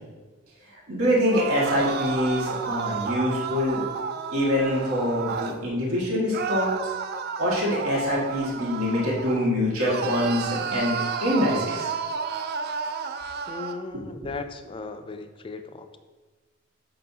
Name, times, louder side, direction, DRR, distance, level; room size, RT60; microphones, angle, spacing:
voice 1, 0.7-3.8 4.3-6.9 7.4-11.9 14.2-14.3, left 1 dB, 70° right, -5 dB, 1.9 m, -25 dB
sound 1, 1.2-5.6 6.3-9.5 9.8-13.8, right 6 dB, 45° right, 0.4 m, -31 dB
voice 2, 13.5-16.0, left 3 dB, 25° left, 8 dB, 0.3 m, -37 dB
6.8 x 5.3 x 2.8 m, 1.3 s
head